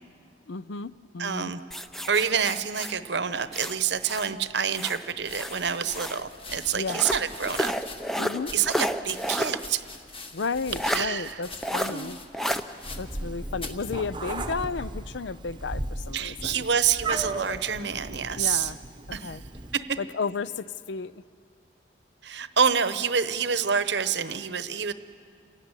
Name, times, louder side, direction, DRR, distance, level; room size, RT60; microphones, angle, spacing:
voice 1, 0.5-1.5 6.7-7.0 8.2-8.5 10.3-12.2 13.0-16.6 18.4-18.8 19.2-19.4 20.0-21.2, left 4 dB, 65° left, 17 dB, 0.5 m, -33 dB
voice 2, 1.2-1.6 2.1-7.7 8.5-9.8 10.9-11.4 11.9-12.1 16.1-18.7 19.1-19.4 19.7-20.0 22.2-24.9, right 7 dB, 60° right, 13 dB, 0.9 m, -27 dB
sound 1, 1.7-4.3 4.7-6.2 6.9-9.6 9.9-10.0 10.8-11.0 11.6-11.9 12.3-12.6, equal, ahead, 0.6 m, -31 dB
sound 2, 5.2-13.3 13.6-13.9 14.6-15.0, left 3 dB, 30° left, 1.5 m, -43 dB
Meow, 12.8-19.7, right 2 dB, 25° right, 0.9 m, -36 dB
28.5 x 17.0 x 9.8 m, 2.3 s
head